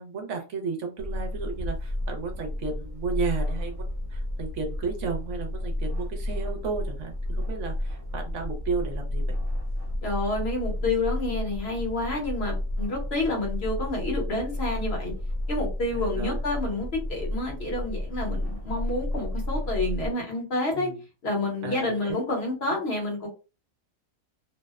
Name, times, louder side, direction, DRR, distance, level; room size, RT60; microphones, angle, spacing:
voice 1, 0.0-9.4 15.9-16.4 20.7-21.0 21.6-22.2, right 5 dB, 70° right, 3 dB, 1.0 m, -33 dB
sound 1, 1.0-20.1, left 1 dB, 45° right, 1.1 m, -31 dB
voice 2, 10.0-15.1 15.5-20.9 21.2-23.3, left 2 dB, 55° left, 0 dB, 1.0 m, -29 dB
2.7 x 2.0 x 2.3 m, 0.31 s
omnidirectional pair, 1.4 m